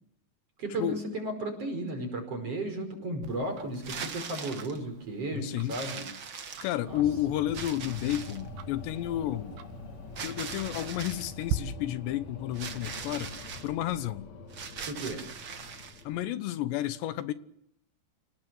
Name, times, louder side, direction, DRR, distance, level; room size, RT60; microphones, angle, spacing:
voice 1, 0.6-6.1 6.8-7.0 14.9-15.2, right 2 dB, 35° right, 5.8 m, -34 dB
Tick-tock, 3.2-11.6, right 8 dB, 80° right, 3.8 m, -43 dB
sound 1, 3.7-4.8 5.7-7.0 7.5-8.5 10.1-11.3 12.5-13.7 14.5-16.0, right 6 dB, 50° right, 1.6 m, -40 dB
voice 2, 5.3-5.8 6.6-9.6 10.2-13.3 13.6-14.3 16.0-17.3, left 13 dB, 80° left, 3.3 m, -31 dB
sound 2, 6.9-16.2, left 3 dB, 50° left, 2.6 m, -45 dB
28.5 x 18.0 x 7.6 m
omnidirectional pair, 5.1 m